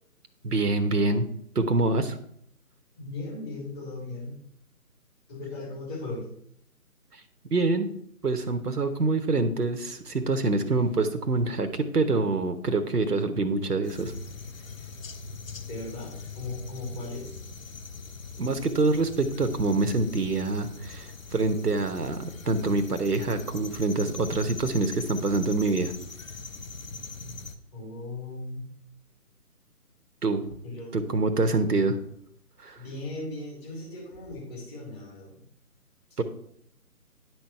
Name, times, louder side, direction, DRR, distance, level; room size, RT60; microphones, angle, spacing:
voice 1, 0.4-1.3 1.5-2.2 7.1-7.2 7.5-7.9 8.2-14.1 18.4-25.9 30.2-30.4 30.9-32.0 32.6-32.8 36.2-36.3, right 3 dB, 85° right, 8 dB, 1.2 m, -26 dB
voice 2, 3.0-4.3 5.3-6.3 15.2-15.3 15.7-17.3 27.7-28.7 30.6-31.3 32.7-35.4, left 2 dB, 15° left, -2 dB, 2.5 m, -37 dB
sound 1, 13.8-27.6, left 4 dB, 60° left, 1.0 m, -41 dB
10.5 x 4.7 x 5.7 m, 0.68 s
figure-of-eight pair, 155°, 45 cm